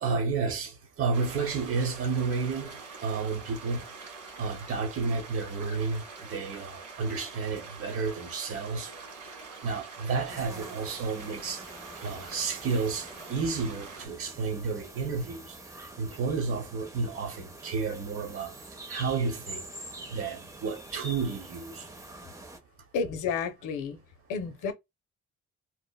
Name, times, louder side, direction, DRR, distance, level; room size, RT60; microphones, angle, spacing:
voice 1, 0.0-2.7 3.0-3.8 4.4-6.0 6.3-8.9 9.6-11.6 12.0-15.4 16.0-18.6 18.9-19.7 20.1-21.9, right 4 dB, 45° right, 0.9 m, -31 dB
sound 1, 1.1-14.1, right 4 dB, 75° right, 1.5 m, -45 dB
sound 2, 10.3-22.6, right 2 dB, 10° right, 0.5 m, -46 dB
voice 2, 22.9-24.0 24.3-24.7, left 5 dB, 90° left, 0.6 m, -31 dB
2.9 x 2.0 x 2.2 m
cardioid pair, 90°, 30 cm